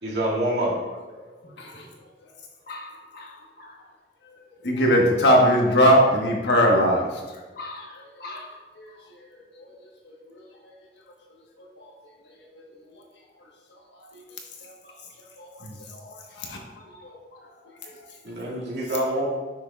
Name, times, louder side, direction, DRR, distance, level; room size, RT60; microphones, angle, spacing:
voice 1, 0.0-0.7 18.2-19.2, right 1 dB, 80° right, -5 dB, 2.2 m, -26 dB
voice 2, 1.4-1.8 4.6-7.1 8.8-8.9 9.6-9.7 10.0-10.1 11.8-11.9 14.1-14.2 15.4-16.6 17.0-17.1, equal, 80° left, 0 dB, 1.4 m, -21 dB
voice 3, 2.7-3.8 7.6-8.5 16.8-17.0 17.3-17.5, left 2 dB, 60° left, 0 dB, 1.2 m, -41 dB
9.2 x 6.2 x 2.4 m, 1.3 s
head